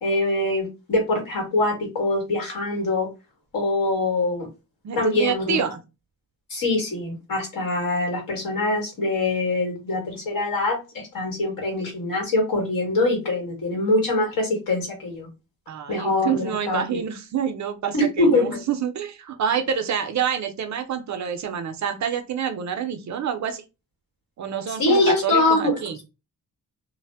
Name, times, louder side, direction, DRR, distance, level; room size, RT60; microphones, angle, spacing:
voice 1, 0.0-3.1 3.5-4.5 4.9-5.6 6.5-15.3 15.9-16.8 17.9-18.6 24.8-25.7, left 2 dB, 65° left, 1 dB, 1.5 m, -23 dB
voice 2, 4.8-5.8 15.7-23.6 24.4-26.0, right 8 dB, 50° right, 7 dB, 0.5 m, -27 dB
2.5 x 2.0 x 3.3 m, 0.27 s
wide cardioid pair, 160°, 37 cm